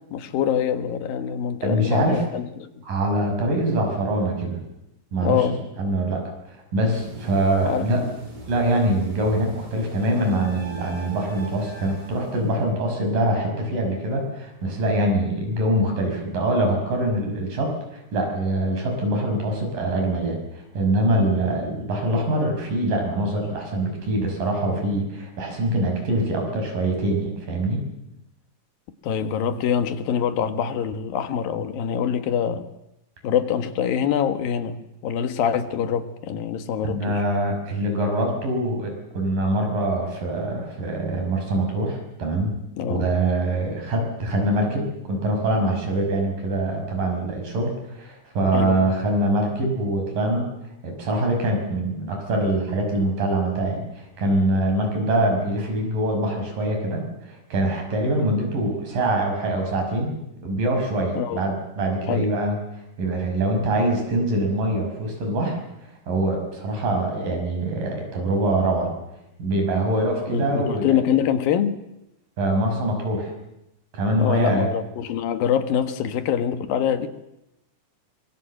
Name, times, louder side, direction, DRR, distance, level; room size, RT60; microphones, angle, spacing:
voice 1, 0.1-2.8 5.2-5.6 7.6-8.1 29.0-32.7 33.2-37.2 42.8-43.1 48.5-48.9 61.2-61.4 62.1-62.3 70.3-71.8 74.2-77.1, left 8 dB, 90° left, 9 dB, 3.3 m, -24 dB
voice 2, 1.6-2.2 2.8-4.6 5.1-5.5 5.8-6.2 6.5-8.1 8.5-27.8 36.8-42.6 42.9-50.5 50.8-60.1 60.4-62.6 63.0-65.6 66.1-68.9 69.4-71.0 72.4-73.3 73.9-74.7, right 1 dB, 75° right, 3 dB, 7.5 m, -24 dB
sound 1, 6.9-12.7, right 2 dB, 30° right, 5.5 m, -42 dB
24.5 x 23.5 x 7.8 m, 0.88 s
omnidirectional pair, 4.0 m